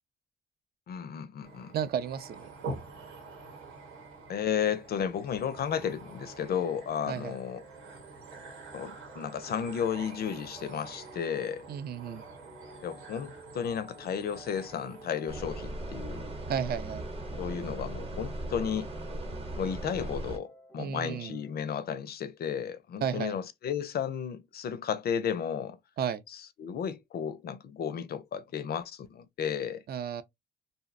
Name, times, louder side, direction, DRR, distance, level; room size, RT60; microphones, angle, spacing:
voice 1, 0.9-1.7 4.3-7.6 8.7-11.7 12.8-16.3 17.4-18.9 19.6-25.8 26.6-29.8, left 8 dB, 50° left, 0.4 m, -33 dB
sound 1, 1.4-15.4, right 3 dB, 90° right, 1.0 m, -46 dB
voice 2, 1.7-2.5 7.1-7.4 11.7-12.2 16.5-17.1 20.8-21.4 23.0-23.4 26.0-26.2 29.9-30.2, right 8 dB, 50° right, 0.4 m, -33 dB
sound 2, 4.4-21.6, equal, ahead, 0.6 m, -54 dB
sound 3, 15.3-20.4, right 1 dB, 30° right, 0.8 m, -38 dB
2.6 x 2.0 x 2.4 m
cardioid pair, 90°, 20 cm